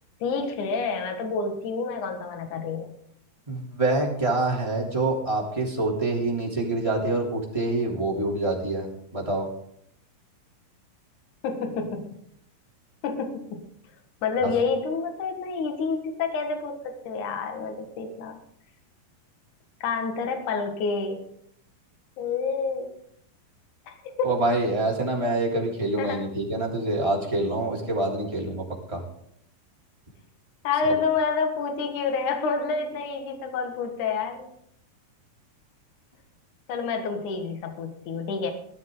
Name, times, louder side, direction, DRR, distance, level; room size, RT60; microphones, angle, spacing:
voice 1, 0.2-2.9 11.4-12.2 13.0-13.7 14.2-18.4 19.8-21.2 22.2-22.9 23.9-24.4 26.0-26.2 30.6-34.5 36.7-38.5, left 4 dB, 65° left, 4 dB, 3.1 m, -28 dB
voice 2, 3.5-9.5 14.4-14.5 24.2-29.0, right 2 dB, 10° right, -3 dB, 3.2 m, -26 dB
18.5 x 13.0 x 3.9 m, 0.71 s
omnidirectional pair, 4.0 m